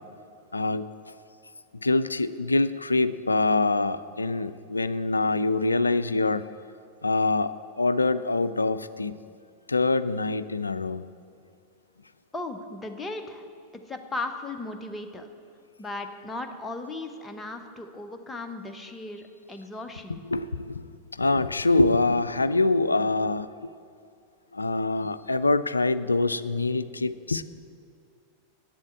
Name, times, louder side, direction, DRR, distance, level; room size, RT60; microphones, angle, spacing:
voice 1, 0.5-0.9 1.8-6.4 7.0-9.1 9.7-11.0 20.1-20.9 21.2-23.5 24.5-27.4, left 2 dB, 80° left, 14 dB, 0.3 m, -25 dB
voice 2, 12.3-13.5 13.9-15.3 15.8-20.2, left 2 dB, 10° left, 6 dB, 0.9 m, -36 dB
8.2 x 7.3 x 8.8 m, 2.4 s
figure-of-eight pair, 90°, 0 cm